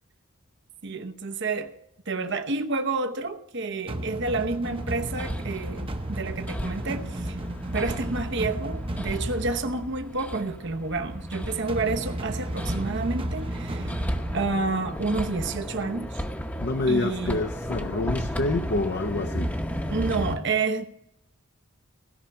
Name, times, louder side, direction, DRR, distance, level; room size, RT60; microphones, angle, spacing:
voice 1, 0.8-1.7 2.1-7.4 7.7-14.0 14.3-16.2 16.9-17.4 19.9-20.8, right 3 dB, 55° right, 0.9 m, -29 dB
sound 1, 3.9-15.8, right 1 dB, 25° right, 0.8 m, -34 dB
Hammer, 4.7-20.3, equal, 5° left, 0.9 m, -34 dB
voice 2, 16.6-19.6, left 2 dB, 50° left, 0.6 m, -27 dB
16.5 x 5.7 x 8.6 m
head